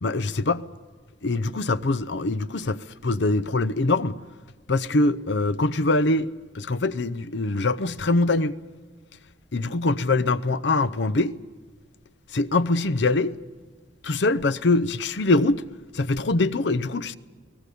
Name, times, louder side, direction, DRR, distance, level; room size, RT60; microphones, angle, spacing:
voice 1, 0.0-0.6 1.2-4.2 4.7-6.3 6.5-8.6 9.5-11.4 12.3-13.4 14.0-15.6 15.9-17.1, left 2 dB, 70° left, 0.7 m, -23 dB
24.0 x 18.0 x 8.4 m
head